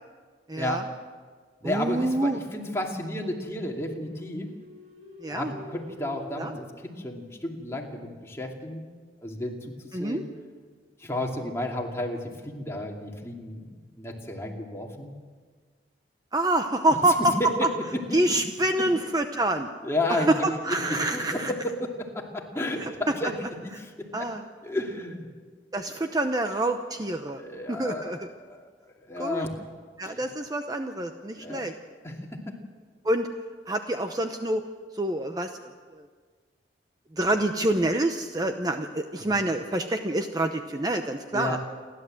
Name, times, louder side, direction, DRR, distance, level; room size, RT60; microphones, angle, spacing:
voice 1, 0.5-0.8 1.6-2.4 5.2-5.5 6.4-6.6 9.9-10.2 16.3-17.2 18.1-19.7 20.1-21.5 24.1-24.4 25.7-27.4 27.7-28.2 29.2-29.5 30.0-31.7 33.0-33.3 33.7-34.7 34.9-35.6 35.9-36.1 37.1-41.6, right 1 dB, 20° right, 6 dB, 0.8 m, -27 dB
voice 2, 1.6-4.5 5.3-8.9 9.2-10.3 11.0-15.1 17.2-17.7 19.8-23.3 23.8-24.3 24.6-25.3 25.9-26.1 27.4-29.6 30.0-30.1 31.3-31.6 32.0-32.5 41.3-41.6, left 1 dB, 15° left, 0 dB, 2.6 m, -32 dB
sound 1, 3.8-7.6, equal, 35° right, 5.0 m, -47 dB
29.0 x 12.0 x 7.7 m, 1.5 s
head